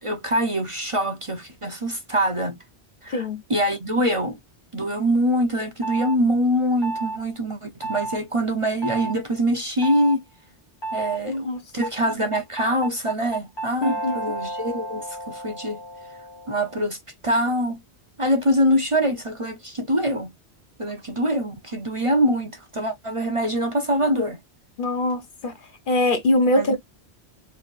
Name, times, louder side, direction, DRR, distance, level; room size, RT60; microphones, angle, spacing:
voice 1, 0.0-2.6 3.0-4.4 4.7-10.2 10.9-15.8 16.5-17.0 17.2-17.8 18.2-20.3 20.8-24.4 26.6-26.8, equal, 30° right, 0.8 m, -24 dB
sound 1, 5.8-6.2 6.8-7.2 7.8-8.2 8.8-9.1 9.8-10.2 10.8-11.2 11.8-16.9, right 2 dB, 25° left, 1.0 m, -32 dB
voice 2, 11.3-11.6 13.8-14.2 24.8-25.5 25.9-26.8, left 1 dB, 50° left, 0.9 m, -22 dB
4.5 x 3.4 x 2.5 m
omnidirectional pair, 1.1 m